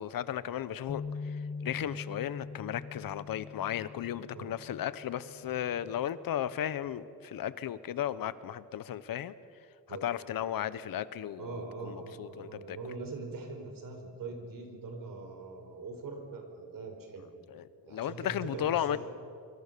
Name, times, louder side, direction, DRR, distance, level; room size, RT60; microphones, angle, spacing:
voice 1, 0.0-9.3 9.9-12.8 17.5-19.0, left 10 dB, 70° left, 15 dB, 1.1 m, -35 dB
sound 1, 0.9-7.1, left 4 dB, 40° left, 1.9 m, -44 dB
voice 2, 11.4-17.3 17.9-19.0, right 3 dB, 65° right, 5 dB, 4.9 m, -42 dB
25.5 x 25.5 x 6.9 m, 2.4 s
wide cardioid pair, 155°, 36 cm